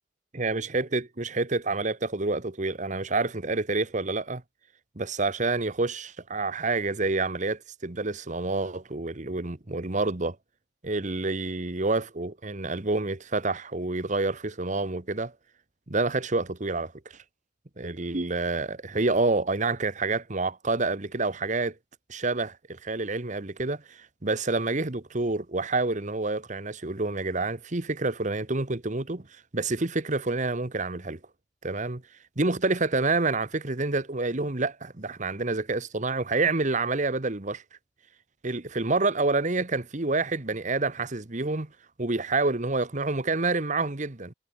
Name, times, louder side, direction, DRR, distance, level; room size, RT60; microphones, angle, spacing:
voice 1, 0.3-4.4 4.9-10.4 10.8-15.3 15.9-16.9 17.8-21.7 22.1-29.3 29.5-31.2 31.6-32.0 32.4-37.6 38.4-41.7 42.0-44.3, right 3 dB, 45° right, 1.3 m, -28 dB
head